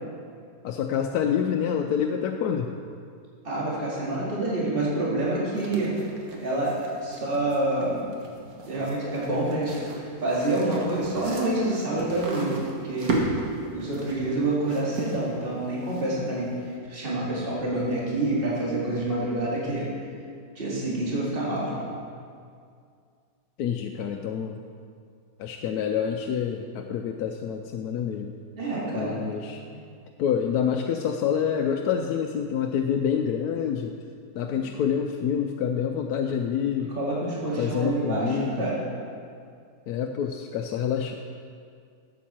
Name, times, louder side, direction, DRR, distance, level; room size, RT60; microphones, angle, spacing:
voice 1, 0.6-2.7 23.6-24.6 25.4-28.3 28.9-29.6 30.2-33.9 34.3-36.9 37.6-38.7 39.9-41.1, left 8 dB, 75° left, 3 dB, 1.0 m, -27 dB
voice 2, 3.4-6.0 6.4-8.0 8.4-13.2 13.7-19.9 20.6-21.8 28.6-29.2 29.7-29.8 34.5-34.6 36.9-38.8, right 2 dB, 35° right, -6 dB, 2.3 m, -27 dB
sound 1, 5.5-16.4, right 2 dB, 60° right, 1.7 m, -36 dB
12.0 x 8.2 x 4.3 m, 2.3 s
omnidirectional pair, 1.7 m